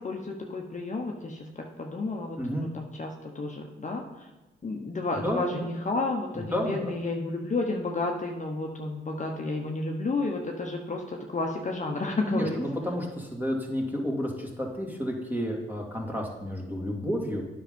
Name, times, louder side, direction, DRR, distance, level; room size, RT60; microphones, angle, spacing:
voice 1, 0.0-4.2 4.6-12.6, left 3 dB, 35° left, 1 dB, 1.1 m, -31 dB
voice 2, 2.4-2.7 5.2-5.7 6.3-6.9 12.3-17.4, equal, 10° right, 0 dB, 2.4 m, -31 dB
9.0 x 5.7 x 5.3 m, 1.1 s
cardioid pair, 60°, 21 cm